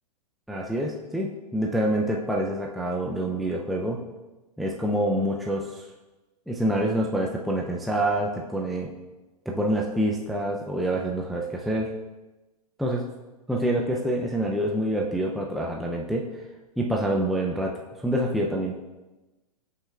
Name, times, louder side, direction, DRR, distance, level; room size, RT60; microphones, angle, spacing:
voice 1, 0.5-4.0 4.6-5.9 6.5-8.9 9.5-11.9 12.8-13.0 13.5-16.4 16.8-18.8, right 1 dB, ahead, -1 dB, 0.5 m, -26 dB
15.0 x 5.7 x 2.4 m, 1.1 s
hypercardioid pair, 120°, 20 cm